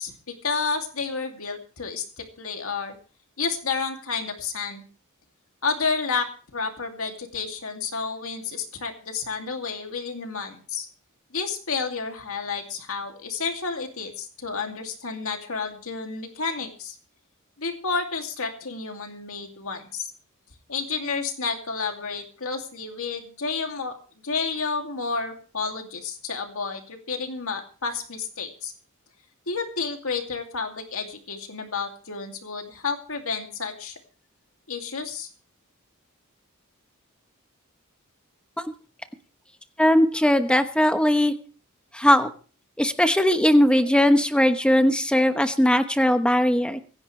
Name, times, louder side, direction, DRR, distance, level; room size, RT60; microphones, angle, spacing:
voice 1, 0.0-3.0 3.4-4.9 5.6-10.9 11.3-17.0 17.6-20.1 20.7-23.9 24.2-28.7 29.5-33.9 34.7-35.3, left 5 dB, 70° left, 4 dB, 2.6 m, -30 dB
voice 2, 39.8-41.3 41.9-42.3 42.8-46.8, left 1 dB, 5° left, 8 dB, 1.1 m, -19 dB
25.0 x 10.5 x 3.3 m, 0.38 s
head